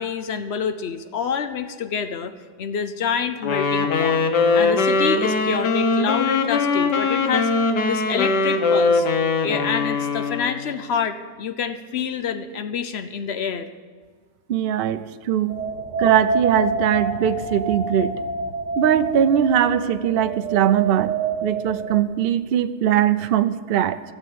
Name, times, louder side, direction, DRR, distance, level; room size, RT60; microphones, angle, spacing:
voice 1, 0.0-2.3 2.6-4.2 4.5-7.5 7.9-9.1 9.4-13.7, left 7 dB, 60° left, 11 dB, 0.7 m, -27 dB
Wind instrument woodwind instrument, 3.4-10.6, left 3 dB, 90° left, 1.6 m, -21 dB
voice 2, 14.5-15.6 16.0-18.2 18.8-21.1 21.4-24.0, right 10 dB, 75° right, 11 dB, 0.5 m, -21 dB
sound 1, 15.5-22.0, right 4 dB, 55° right, 1.3 m, -27 dB
16.0 x 7.3 x 8.6 m, 1.6 s
omnidirectional pair, 1.7 m